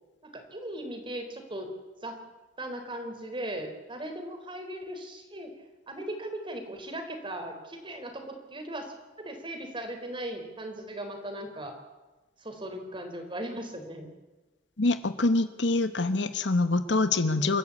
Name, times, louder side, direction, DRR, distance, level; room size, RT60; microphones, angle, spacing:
voice 1, 0.2-1.7 2.0-2.2 2.6-5.5 5.9-11.8 12.4-14.1 17.4-17.6, right 1 dB, 30° right, 5 dB, 4.0 m, -38 dB
voice 2, 14.8-17.6, left 2 dB, 75° left, 10 dB, 1.2 m, -25 dB
28.5 x 13.5 x 8.4 m, 1.1 s
head